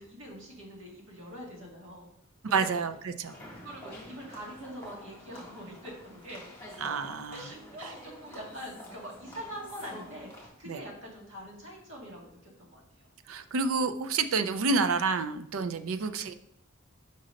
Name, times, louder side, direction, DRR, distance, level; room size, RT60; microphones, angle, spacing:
voice 1, 0.0-2.1 2.5-2.7 3.6-6.4 7.3-13.1 16.0-16.2, equal, 65° right, -2 dB, 1.9 m, -44 dB
voice 2, 2.5-3.3 6.8-7.5 10.7-10.8 13.3-16.3, right 4 dB, 90° right, 10 dB, 0.5 m, -29 dB
sound 1, 3.2-10.5, left 1 dB, 10° left, 1.7 m, -47 dB
5.3 x 3.9 x 5.2 m, 0.72 s
head